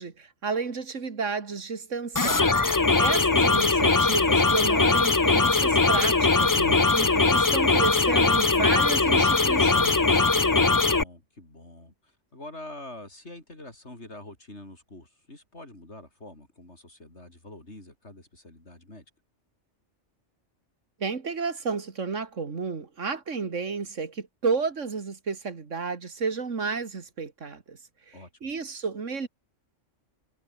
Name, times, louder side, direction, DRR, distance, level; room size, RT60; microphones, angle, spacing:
voice 1, 0.0-2.5 3.0-10.1 21.0-27.8 28.1-28.2 28.4-29.3, right 5 dB, 85° right, 2.5 m, -31 dB
sound 1, 2.2-11.0, left 3 dB, 20° left, 0.6 m, -21 dB
voice 2, 10.6-19.0 28.1-28.5, left 2 dB, 65° left, 5.8 m, -46 dB
omnidirectional pair, 1.3 m